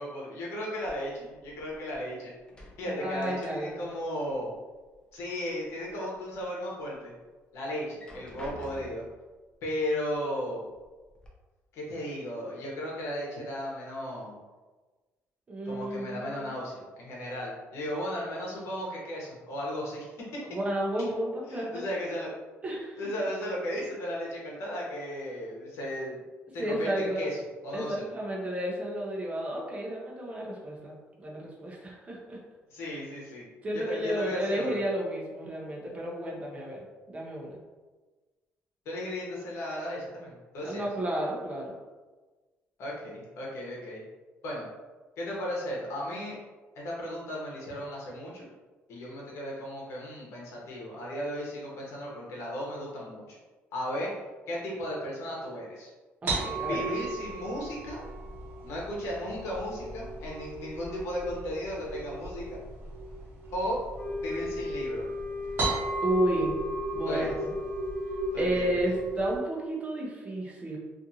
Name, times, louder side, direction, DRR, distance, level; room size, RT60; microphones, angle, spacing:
voice 1, 0.0-2.3 2.8-4.5 5.1-7.1 7.5-9.0 9.6-10.6 11.7-14.4 15.6-20.4 21.5-22.3 23.0-26.2 26.5-27.4 27.6-28.0 32.7-33.5 33.7-34.8 38.8-40.9 42.8-44.0 44.4-44.7 45.2-46.4 46.7-48.5 48.9-53.4 53.7-54.1 54.5-55.9 56.7-58.1 58.6-62.6 63.5-63.8 64.2-65.0 67.1-67.3 68.3-68.9, equal, 75° left, -4 dB, 0.9 m, -35 dB
sound 1, 0.8-2.1 2.4-4.0 4.2-5.2 5.7-6.4 6.9-7.0 7.8-9.2 10.1-10.2 10.7-11.3, left 1 dB, 20° left, 0.5 m, -49 dB
voice 2, 2.8-3.8 15.5-16.5 20.5-21.8 22.6-23.0 26.6-27.3 27.7-32.4 33.6-36.8 37.1-37.6 40.6-41.7 56.2-56.8 66.0-66.6 66.9-67.4 68.4-70.8, right 1 dB, 30° right, -3 dB, 0.6 m, -32 dB
sound 2, 56.3-69.4, right 3 dB, 50° right, 0.9 m, -36 dB
Wind instrument woodwind instrument, 63.9-68.4, left 3 dB, 40° left, 1.0 m, -36 dB
2.5 x 2.5 x 2.7 m, 1.3 s
cardioid pair, 125°, 5 cm